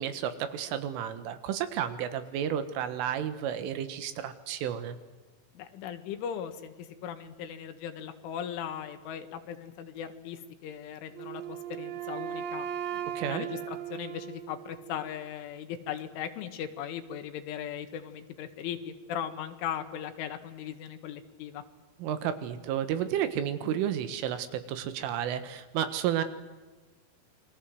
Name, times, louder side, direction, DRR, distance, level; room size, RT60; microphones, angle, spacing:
voice 1, 0.0-5.0 13.2-13.5 22.0-26.2, right 10 dB, 85° right, 11 dB, 4.1 m, -32 dB
voice 2, 5.5-12.7 12.9-21.6, left 9 dB, 80° left, 8 dB, 4.1 m, -38 dB
Wind instrument woodwind instrument, 11.1-15.1, right 10 dB, 65° right, 2.7 m, -37 dB
29.0 x 22.5 x 7.8 m, 1.3 s
omnidirectional pair, 5.6 m